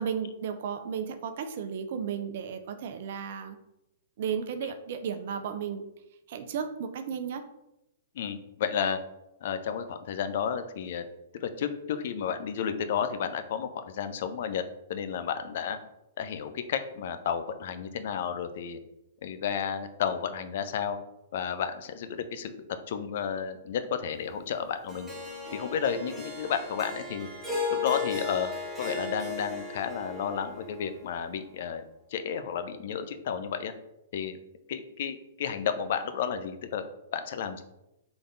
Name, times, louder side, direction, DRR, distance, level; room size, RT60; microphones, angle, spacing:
voice 1, 0.0-3.6 4.2-5.8 6.3-7.4, right 7 dB, 60° right, 8 dB, 0.5 m, -34 dB
voice 2, 8.1-9.0 9.4-11.1 11.3-14.6 14.9-15.8 16.2-18.8 19.2-21.0 21.3-22.5 22.9-25.1 25.5-27.3 27.7-28.5 28.8-31.8 32.1-33.7 34.1-34.4 34.7-36.8 37.1-37.6, left 7 dB, 60° left, 10 dB, 0.5 m, -32 dB
Harp, 24.9-31.3, left 4 dB, 10° right, 1.3 m, -36 dB
3.9 x 3.4 x 3.8 m, 0.87 s
hypercardioid pair, 125°, 0 cm